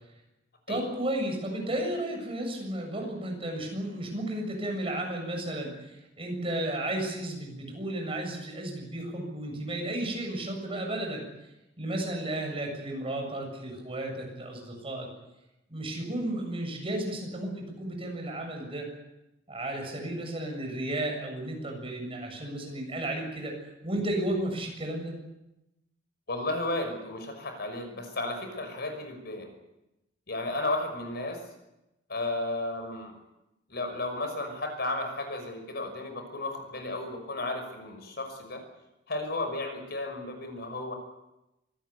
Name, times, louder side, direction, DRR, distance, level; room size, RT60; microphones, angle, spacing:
voice 1, 0.7-11.2 11.8-15.1 15.7-18.9 19.5-23.5 23.8-25.1, right 1 dB, 30° right, 2 dB, 7.3 m, -33 dB
voice 2, 26.3-29.5 30.3-31.4 32.1-33.1 33.7-38.6 39.1-40.9, left 2 dB, 60° left, 6 dB, 5.9 m, -33 dB
25.0 x 18.5 x 8.4 m, 0.93 s
head